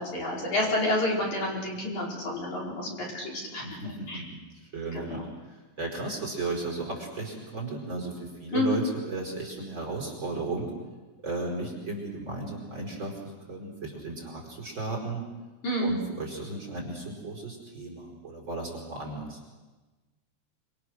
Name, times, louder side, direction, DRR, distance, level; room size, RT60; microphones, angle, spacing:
voice 1, 0.0-3.8 4.1-4.2 4.9-5.2 8.5-8.8 15.6-16.0, left 1 dB, 45° left, -3 dB, 6.1 m, -29 dB
voice 2, 3.6-10.7 11.2-15.2 15.8-19.4, right 2 dB, 25° right, -1 dB, 5.2 m, -35 dB
26.5 x 26.5 x 6.4 m, 1.2 s
omnidirectional pair, 4.9 m